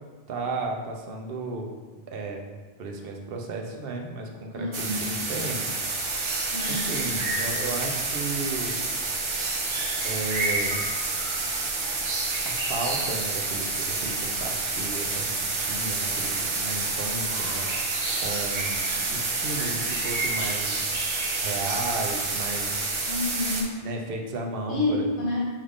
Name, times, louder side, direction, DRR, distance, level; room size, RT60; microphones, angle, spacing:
voice 1, 0.3-1.8 2.1-2.4 2.8-5.8 6.2-6.3 6.7-8.8 10.0-10.9 12.4-17.7 18.2-20.9 21.4-22.9 23.8-25.1, right 2 dB, 65° right, 1 dB, 0.8 m, -34 dB
voice 2, 4.5-5.0 6.5-6.8 23.1-23.8 24.7-25.5, left 2 dB, 55° left, -8 dB, 1.4 m, -28 dB
sound 1, 4.7-23.6, right 3 dB, 45° right, 0.4 m, -28 dB
5.3 x 3.4 x 2.4 m, 1.4 s
omnidirectional pair, 1.1 m